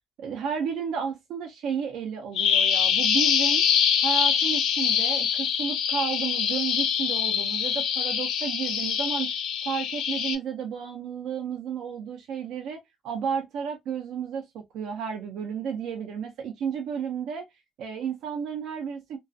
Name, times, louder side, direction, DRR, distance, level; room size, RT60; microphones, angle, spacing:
voice 1, 0.2-9.3 9.6-17.5 17.8-19.2, right 7 dB, 85° right, 0.5 m, -32 dB
Bird vocalization bird call bird song, 2.4-10.4, left 8 dB, 85° left, 0.4 m, -24 dB
2.3 x 2.3 x 2.4 m
cardioid pair, 90°, 0 cm